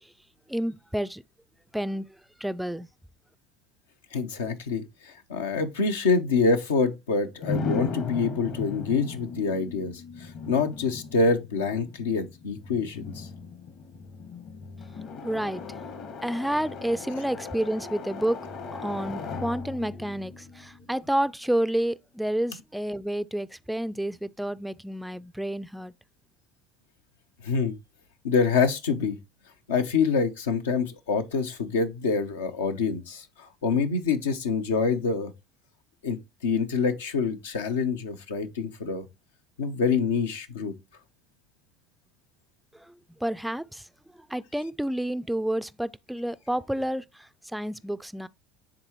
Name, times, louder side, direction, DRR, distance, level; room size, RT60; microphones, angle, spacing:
voice 1, 0.5-1.2 1.7-2.1 2.4-2.9 15.2-15.8 16.2-18.4 18.7-25.9 42.7-42.9 43.2-43.9 44.3-48.3, right 1 dB, 5° right, 0.3 m, -30 dB
voice 2, 4.1-13.3 27.4-27.7 28.2-29.2 29.7-35.3 36.0-39.1 39.6-40.7, left 4 dB, 85° left, 0.8 m, -26 dB
sound 1, 7.4-21.2, left 5 dB, 60° left, 1.7 m, -37 dB
9.8 x 3.8 x 3.0 m
hypercardioid pair, 80°, 0 cm